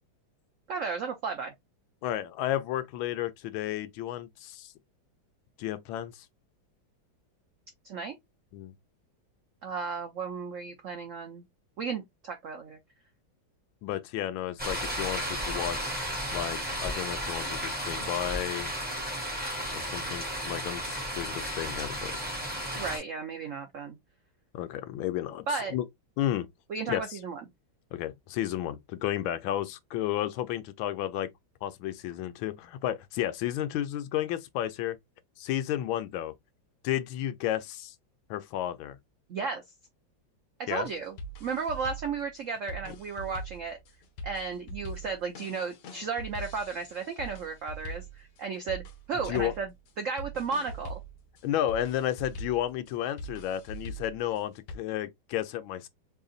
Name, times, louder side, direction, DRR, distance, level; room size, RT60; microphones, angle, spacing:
voice 1, 0.7-1.5 7.8-8.1 9.6-11.4 11.8-12.8 22.8-24.0 25.5-25.7 26.7-27.4 39.3-39.6 40.6-43.8 44.2-49.7 50.0-51.0, right 5 dB, 75° right, 0.7 m, -34 dB
voice 2, 2.0-4.7 5.6-6.3 8.5-8.7 13.8-16.0 16.3-18.7 19.7-22.3 24.5-25.8 26.2-26.5 26.9-27.2 27.9-31.3 31.6-35.0 35.4-36.3 36.8-37.9 38.3-39.0 40.7-40.9 42.9-43.0 49.2-49.5 51.4-55.9, left 12 dB, 85° left, 1.4 m, -32 dB
sound 1, 14.6-23.0, equal, 5° right, 1.4 m, -33 dB
sound 2, 40.7-54.7, right 1 dB, 65° left, 1.4 m, -43 dB
3.8 x 3.5 x 2.4 m
omnidirectional pair, 2.2 m